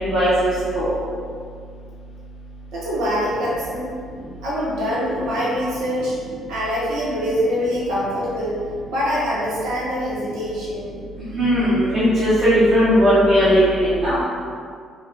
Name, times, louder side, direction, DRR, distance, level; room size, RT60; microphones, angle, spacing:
voice 1, 0.0-0.9 11.3-14.1, equal, 55° right, -12 dB, 1.1 m, -17 dB
voice 2, 2.7-3.9 4.4-6.1 6.5-8.6 8.9-11.0, equal, 75° right, -7 dB, 0.7 m, -24 dB
4.0 x 2.4 x 3.3 m, 2.2 s
hypercardioid pair, 50°, 0 cm